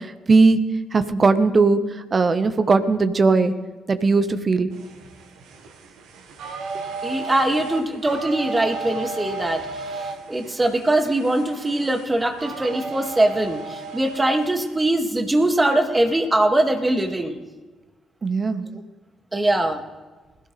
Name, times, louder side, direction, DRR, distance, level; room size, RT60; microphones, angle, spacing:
voice 1, 0.3-0.6 0.9-1.8 2.1-3.5 3.9-4.7 18.2-18.6, right 4 dB, 40° right, 10 dB, 1.3 m, -18 dB
sound 1, 4.7-14.7, right 3 dB, 65° right, 1.7 m, -35 dB
voice 2, 7.0-9.7 10.3-17.4 18.7-18.8 19.3-19.8, right 1 dB, 20° right, 5 dB, 2.3 m, -22 dB
20.0 x 16.5 x 3.4 m, 1.3 s
figure-of-eight pair, 40°, 0 cm